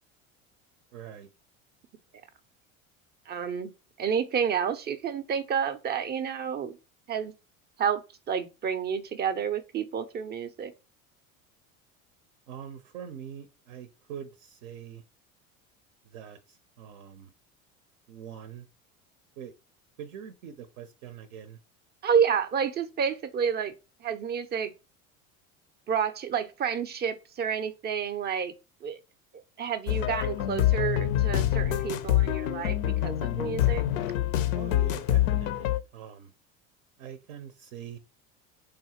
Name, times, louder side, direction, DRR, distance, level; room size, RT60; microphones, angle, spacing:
voice 1, 0.9-1.3 12.5-15.0 16.0-17.3 18.1-18.7 19.4-19.5 20.0-21.6 34.5-36.3 37.0-38.0, right 8 dB, 75° right, 0.6 m, -43 dB
voice 2, 3.3-3.7 4.0-6.8 7.1-7.3 7.8-10.7 22.0-23.7 24.0-24.7 25.9-28.5 28.8-29.0 29.6-33.8, right 7 dB, 25° right, 0.4 m, -29 dB
sound 1, 29.9-35.8, left 13 dB, 75° left, 0.5 m, -26 dB
3.5 x 2.4 x 2.8 m
hypercardioid pair, 80°, 41 cm